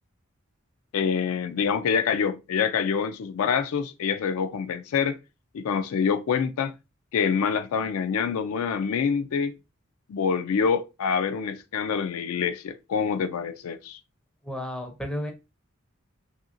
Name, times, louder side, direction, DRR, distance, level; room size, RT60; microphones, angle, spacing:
voice 1, 0.9-5.2 5.5-6.7 7.1-9.5 10.1-14.0, left 6 dB, 80° left, 0.3 m, -26 dB
voice 2, 14.4-15.3, left 1 dB, 5° left, 0.4 m, -32 dB
2.8 x 2.7 x 2.5 m
head